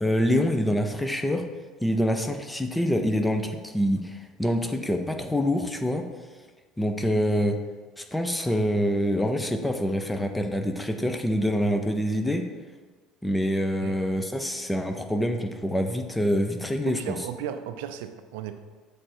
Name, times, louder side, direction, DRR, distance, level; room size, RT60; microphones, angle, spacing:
voice 1, 0.0-1.4 1.8-6.1 6.8-7.6 8.0-12.4 13.2-17.2, equal, 5° left, 5 dB, 0.6 m, -26 dB
voice 2, 16.9-18.6, right 9 dB, 85° right, 9 dB, 0.4 m, -35 dB
7.6 x 3.4 x 4.4 m, 1.4 s
supercardioid pair, 100°, 0 cm